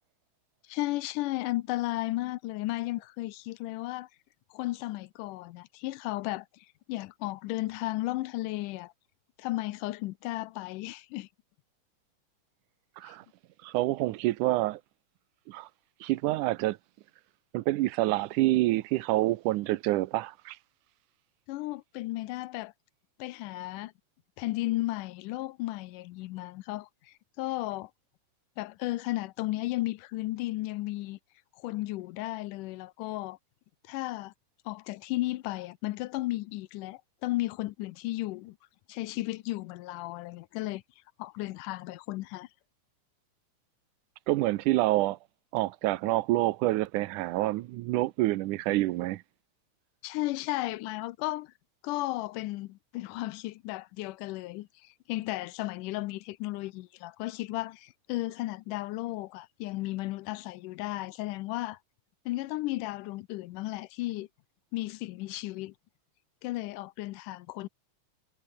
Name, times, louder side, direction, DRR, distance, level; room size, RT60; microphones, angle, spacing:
voice 1, 0.7-4.1 4.5-8.9 9.4-11.3 13.1-13.2 21.5-22.7 23.2-23.9 24.4-27.9 28.6-31.2 31.6-33.4 33.9-34.3 34.7-38.6 38.9-40.8 41.2-42.5 50.0-51.5 51.8-61.8 62.3-64.3 64.7-65.7 66.4-67.7, left 18 dB, 90° left, 2.3 m, -34 dB
voice 2, 13.6-14.8 15.5-15.7 16.0-16.8 17.5-20.6 44.3-45.2 45.5-49.2, right 17 dB, 80° right, 2.2 m, -27 dB
omnidirectional pair, 3.6 m